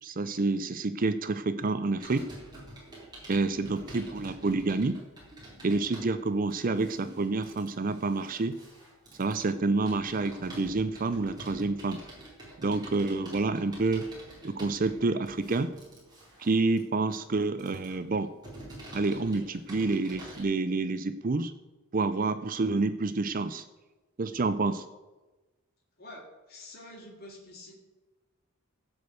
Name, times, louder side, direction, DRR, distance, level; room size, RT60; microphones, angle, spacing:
voice 1, 0.0-2.2 3.3-5.0 5.6-8.6 9.2-12.0 12.6-14.1 14.4-15.7 16.4-18.3 18.9-21.5 21.9-23.6 24.2-24.8, right 3 dB, 40° right, 11 dB, 0.5 m, -28 dB
Computer keyboard, 2.0-20.4, right 1 dB, 20° right, 4.0 m, -48 dB
voice 2, 26.0-27.7, left 1 dB, 45° left, -2 dB, 2.8 m, -47 dB
15.5 x 5.2 x 8.0 m, 1.1 s
head